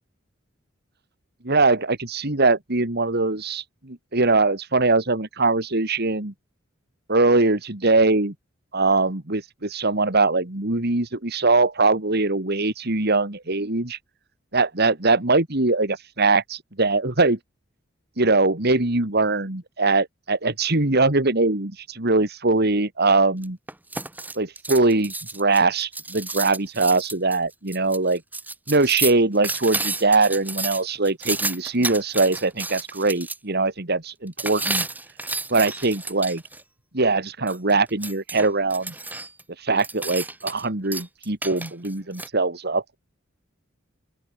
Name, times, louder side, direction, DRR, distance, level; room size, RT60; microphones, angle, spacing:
voice 1, 1.4-6.3 7.1-8.3 8.7-14.0 14.5-17.4 18.2-23.6 24.4-28.2 28.7-34.9 35.5-36.4 36.9-38.9 39.6-43.0, right 3 dB, 55° right, 2.6 m, -22 dB
sound 1, 23.4-33.4 34.4-36.6 37.5-39.4 39.8-40.7 40.9-42.3, right 3 dB, 10° right, 1.2 m, -31 dB
open air
head